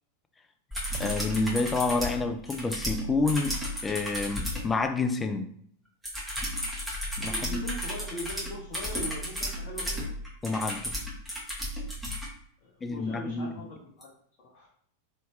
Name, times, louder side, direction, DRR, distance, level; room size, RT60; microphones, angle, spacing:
sound 1, 0.7-4.7 6.0-12.3 14.0-14.1, equal, 5° right, 1.1 m, -33 dB
voice 1, 0.9-5.5 7.2-7.6 10.4-10.9 12.8-13.5, left 3 dB, 15° left, 7 dB, 0.4 m, -29 dB
voice 2, 7.3-10.1 12.6-14.1 14.4-14.7, left 2 dB, 40° left, -5 dB, 0.8 m, -41 dB
3.1 x 2.7 x 3.1 m, 0.64 s
figure-of-eight pair, 90°, 0 cm